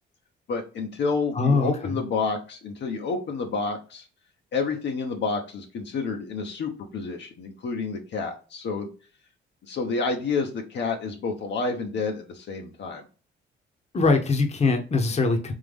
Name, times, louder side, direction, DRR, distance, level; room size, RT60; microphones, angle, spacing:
voice 1, 0.5-4.0 4.5-8.9 9.7-13.0, left 4 dB, 65° left, 0.8 m, -29 dB
voice 2, 1.4-2.0 13.9-15.5, left 3 dB, 35° left, 0.9 m, -22 dB
3.7 x 2.9 x 3.5 m
cardioid pair, 90°, 20 cm